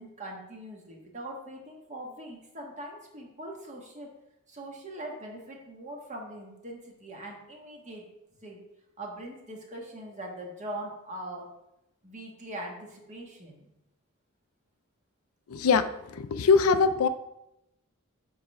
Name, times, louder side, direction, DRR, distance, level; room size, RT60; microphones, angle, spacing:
voice 1, 0.0-4.1 4.5-8.1 8.4-8.6 9.0-11.5 12.0-13.7, right 1 dB, 35° right, 0 dB, 1.5 m, -41 dB
voice 2, 15.5-17.1, left 5 dB, 75° left, 11 dB, 0.5 m, -23 dB
8.0 x 3.5 x 5.4 m, 0.87 s
head